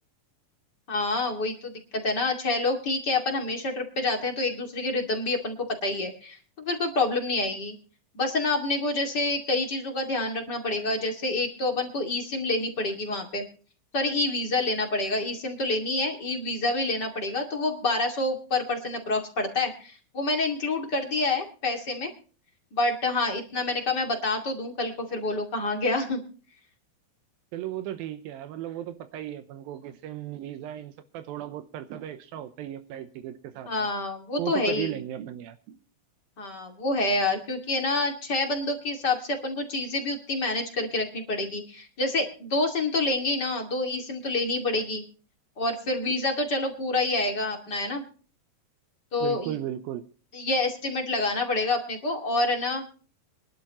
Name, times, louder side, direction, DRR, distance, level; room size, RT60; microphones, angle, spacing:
voice 1, 0.9-7.8 8.1-13.5 13.9-22.1 22.7-26.2 33.7-34.9 36.4-45.0 45.6-48.0 49.1-49.5 50.3-52.8, left 2 dB, 30° left, 2 dB, 2.5 m, -27 dB
voice 2, 27.5-33.9 34.4-35.8 46.1-46.2 49.2-50.1, right 12 dB, 80° right, 10 dB, 2.7 m, -36 dB
24.5 x 11.5 x 3.0 m, 0.39 s
omnidirectional pair, 4.2 m